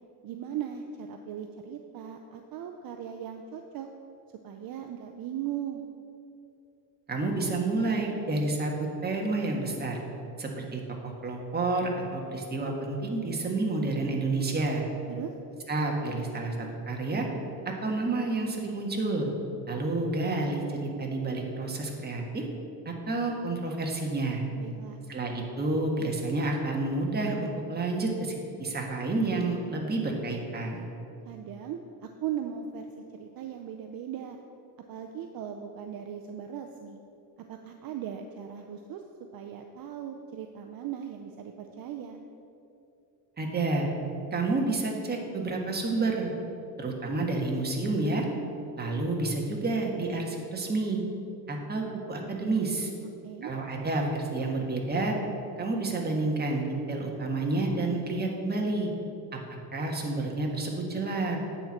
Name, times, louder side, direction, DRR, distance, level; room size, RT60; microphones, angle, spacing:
voice 1, 0.2-3.9 4.4-5.9 15.1-15.3 24.6-25.0 31.2-34.4 34.9-37.0 37.5-39.0 39.3-42.2 53.2-53.5, right 9 dB, 55° right, 4 dB, 0.7 m, -38 dB
voice 2, 7.1-10.0 10.4-14.8 15.7-17.3 17.6-19.3 19.7-22.4 22.8-24.4 25.1-28.3 28.6-30.9 43.4-43.9 44.3-46.3 46.8-48.3 48.8-51.0 51.5-52.9 53.4-55.1 55.6-58.9 59.7-61.4, right 2 dB, 20° right, 0 dB, 1.5 m, -29 dB
9.1 x 4.5 x 7.2 m, 2.7 s
cardioid pair, 115°, 43 cm